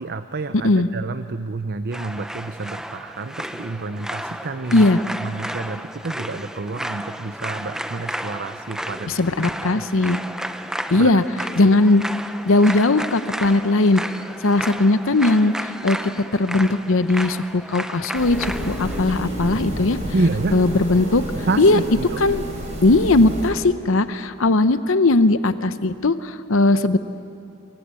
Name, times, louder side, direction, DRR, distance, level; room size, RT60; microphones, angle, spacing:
voice 1, 0.0-4.8 5.2-9.1 9.7-9.8 11.0-11.1 20.1-20.6 21.5-22.2, right 3 dB, 50° right, 10 dB, 0.7 m, -28 dB
voice 2, 0.5-0.9 4.7-5.0 9.1-10.2 10.9-11.2 11.6-12.0 12.4-14.0 14.4-20.0 20.5-21.2 21.6-21.8 22.2-22.4 22.8-27.0, left 2 dB, 65° left, 12 dB, 0.8 m, -18 dB
sound 1, 1.9-19.0, equal, 5° right, 0.7 m, -32 dB
sound 2, 18.1-23.5, equal, 30° right, 5.5 m, -30 dB
27.0 x 23.5 x 8.4 m, 2.9 s
head